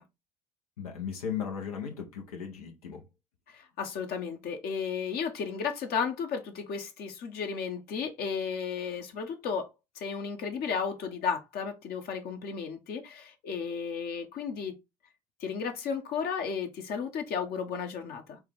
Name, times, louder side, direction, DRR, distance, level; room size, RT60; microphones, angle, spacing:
voice 1, 0.8-3.1, left 7 dB, 90° left, 0.8 m, -36 dB
voice 2, 3.5-9.7 9.9-14.8 15.4-18.4, left 6 dB, 55° left, 1.0 m, -34 dB
4.5 x 2.4 x 3.5 m
hypercardioid pair, 60°, 18 cm